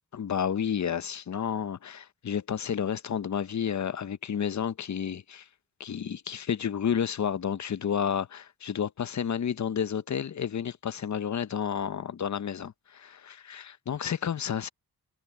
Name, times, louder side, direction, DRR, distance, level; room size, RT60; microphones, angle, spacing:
voice 1, 0.1-5.5 5.8-14.7, left 8 dB, 45° left, 0.8 m, -31 dB
cardioid pair, 75°, 38 cm